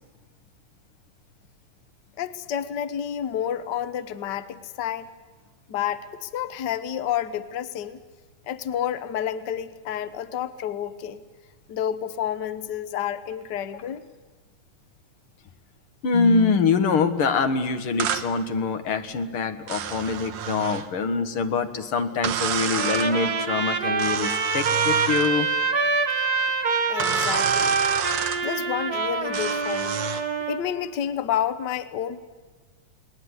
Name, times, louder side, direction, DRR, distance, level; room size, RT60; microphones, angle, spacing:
voice 1, 2.2-5.1 5.7-8.0 8.5-11.2 11.7-14.1 26.9-27.8 28.4-30.0 30.5-32.2, left 10 dB, 75° left, 13 dB, 0.9 m, -30 dB
voice 2, 16.0-25.5, left 4 dB, 55° left, 8 dB, 2.1 m, -24 dB
sound 1, 18.0-18.3 19.7-20.9 22.2-23.1 24.0-25.3 27.0-28.4 29.3-30.3, right 9 dB, 70° right, 2.4 m, -29 dB
Trumpet, 22.7-30.6, right 4 dB, 35° right, 2.0 m, -25 dB
29.5 x 20.0 x 9.7 m, 1.4 s
omnidirectional pair, 3.4 m